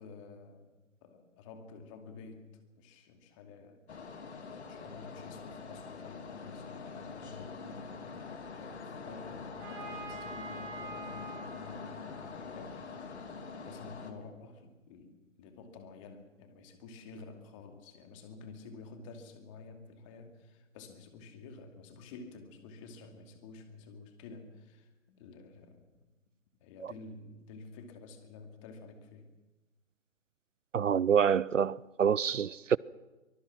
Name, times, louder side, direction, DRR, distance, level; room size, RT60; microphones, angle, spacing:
voice 1, 0.0-2.5 2.7-4.2 4.6-8.1 8.4-12.8 13.6-26.1 26.6-29.3, left 4 dB, 25° left, 2.6 m, -50 dB
sound 1, 3.9-14.1, left 5 dB, 60° left, 2.9 m, -44 dB
Trumpet, 9.6-13.3, right 2 dB, 25° right, 7.2 m, -47 dB
voice 2, 30.7-32.8, right 7 dB, 75° right, 0.6 m, -27 dB
24.0 x 22.0 x 6.1 m
figure-of-eight pair, 135°, 38 cm